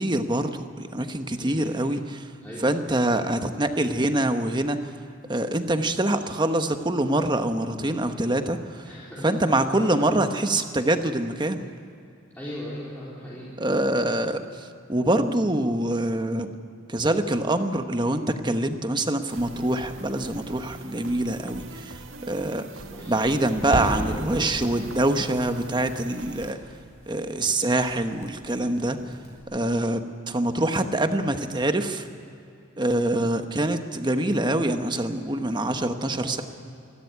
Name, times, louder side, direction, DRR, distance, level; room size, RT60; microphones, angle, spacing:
voice 1, 0.0-2.3 2.6-4.9 5.3-8.8 9.2-11.7 13.6-16.5 16.9-22.0 22.3-22.7 23.1-26.6 27.1-29.0 29.5-32.1 32.8-36.4, right 1 dB, 20° right, 7 dB, 1.1 m, -25 dB
voice 2, 1.4-1.8 2.4-2.7 8.8-10.0 12.3-13.6 22.9-23.2 23.6-24.2 28.9-29.2 35.5-36.4, equal, 10° left, -8 dB, 4.0 m, -39 dB
sound 1, 19.3-26.5, right 3 dB, 75° right, 1.7 m, -42 dB
sound 2, 23.5-29.4, equal, 35° left, 5.7 m, -37 dB
26.0 x 13.0 x 9.6 m, 2.6 s
head